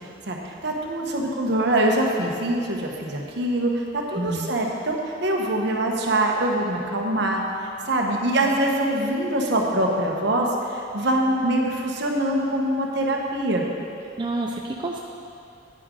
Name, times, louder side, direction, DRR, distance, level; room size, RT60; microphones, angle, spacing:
voice 1, 0.3-7.4 7.9-13.6, right 1 dB, 60° right, 0 dB, 1.1 m, -24 dB
voice 2, 4.2-4.5 14.2-15.0, right 2 dB, 25° right, 0 dB, 0.4 m, -28 dB
9.9 x 9.7 x 3.8 m, 2.6 s
head